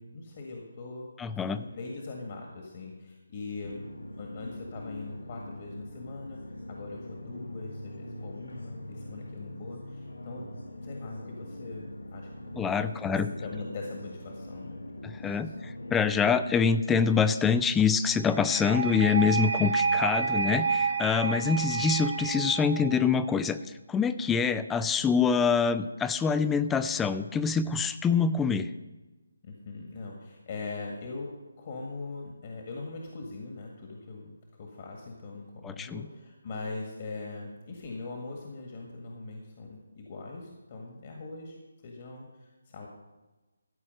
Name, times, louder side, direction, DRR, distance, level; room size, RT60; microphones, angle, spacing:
voice 1, 0.0-1.1 1.4-3.8 4.1-10.4 10.8-14.8 15.3-15.5 29.4-31.3 31.6-42.9, left 3 dB, 40° left, 0 dB, 1.8 m, -41 dB
voice 2, 1.2-1.6 12.6-13.3 15.0-15.5 15.9-23.6 23.9-28.7 35.6-36.0, left 6 dB, 10° left, 12 dB, 0.4 m, -25 dB
sound 1, 3.6-16.4, left 1 dB, 85° left, 1.2 m, -42 dB
sound 2, 18.2-23.2, right 5 dB, 60° right, 1.0 m, -30 dB
14.0 x 4.7 x 7.7 m, 1.1 s
figure-of-eight pair, 155°, 0 cm